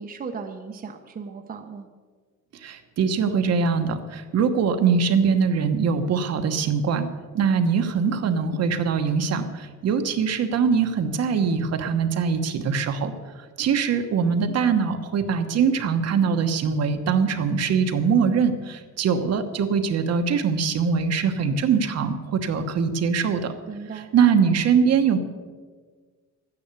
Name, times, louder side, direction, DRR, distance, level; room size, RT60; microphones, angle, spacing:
voice 1, 0.0-1.9 23.7-24.1, right 5 dB, 30° right, 3 dB, 0.9 m, -36 dB
voice 2, 2.6-7.1 7.3-13.1 13.6-23.5 23.9-25.2, right 6 dB, 55° right, 7 dB, 1.2 m, -22 dB
13.0 x 9.8 x 8.3 m, 1.5 s
cardioid pair, 175°, 30 cm